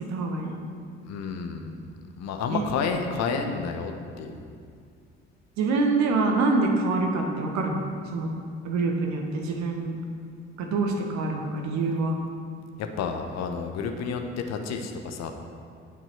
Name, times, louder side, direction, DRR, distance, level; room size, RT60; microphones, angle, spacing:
voice 1, 0.1-0.5 2.5-2.6 5.6-7.8 8.1-8.3 8.6-10.0 10.6-12.1, right 3 dB, 55° right, 2 dB, 1.5 m, -25 dB
voice 2, 1.0-1.8 2.2-4.3 12.8-15.3, left 5 dB, 55° left, 5 dB, 1.1 m, -30 dB
16.5 x 6.0 x 4.6 m, 2.2 s
figure-of-eight pair, 45°, 32 cm